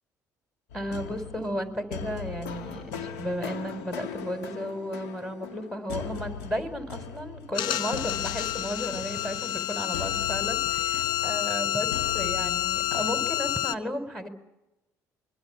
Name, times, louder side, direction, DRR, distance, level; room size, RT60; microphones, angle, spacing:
sound 1, 0.7-13.6, left 6 dB, 80° left, 2.1 m, -40 dB
voice 1, 0.7-14.3, equal, ahead, 6 dB, 4.9 m, -34 dB
sound 2, 7.5-13.7, left 12 dB, 65° left, 0.9 m, -29 dB
25.5 x 23.5 x 7.5 m, 0.94 s
hypercardioid pair, 60°, 9 cm